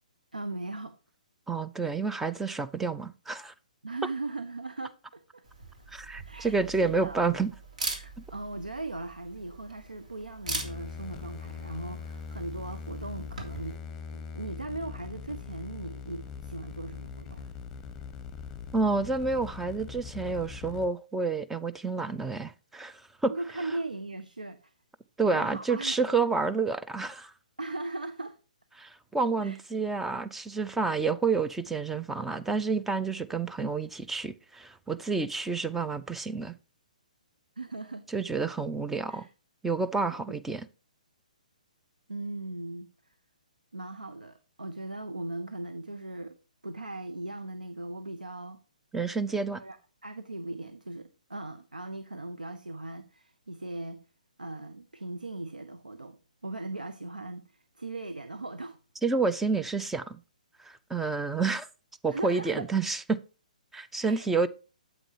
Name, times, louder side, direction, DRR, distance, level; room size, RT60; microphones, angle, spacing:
voice 1, 0.3-0.9 3.8-5.4 6.2-7.2 7.9-13.8 14.1-17.5 23.3-24.6 25.3-26.1 27.6-28.4 29.4-29.6 37.6-38.0 39.1-39.3 42.1-42.9 43.7-46.4 46.6-48.6 49.6-49.8 50.0-54.0 54.4-56.2 56.4-58.8 62.1-62.6 64.0-64.5, right 2 dB, 85° right, 0.8 m, -38 dB
voice 2, 1.5-3.5 5.9-7.5 18.7-23.3 25.2-27.3 28.8-36.5 38.1-39.3 39.6-40.7 48.9-49.6 59.0-60.2 60.6-61.7 62.0-63.2 63.7-64.5, right 4 dB, 5° right, 0.5 m, -29 dB
Camera, 5.4-13.8, right 3 dB, 60° right, 3.1 m, -42 dB
sound 1, 10.5-20.9, left 5 dB, 15° left, 1.1 m, -41 dB
8.9 x 8.0 x 2.8 m
figure-of-eight pair, 130°, 4 cm